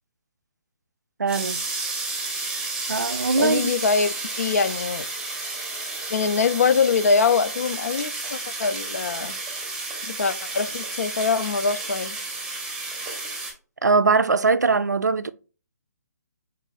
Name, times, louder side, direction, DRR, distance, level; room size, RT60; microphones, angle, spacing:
voice 1, 1.2-1.6 2.5-3.7 13.8-15.3, right 4 dB, 80° right, 0.4 m, -21 dB
sound 1, 1.3-13.5, right 3 dB, 5° right, 1.0 m, -32 dB
voice 2, 3.4-5.1 6.1-9.3 10.0-12.2, left 5 dB, 60° left, 0.4 m, -23 dB
5.5 x 3.7 x 2.3 m
figure-of-eight pair, 135°, 9 cm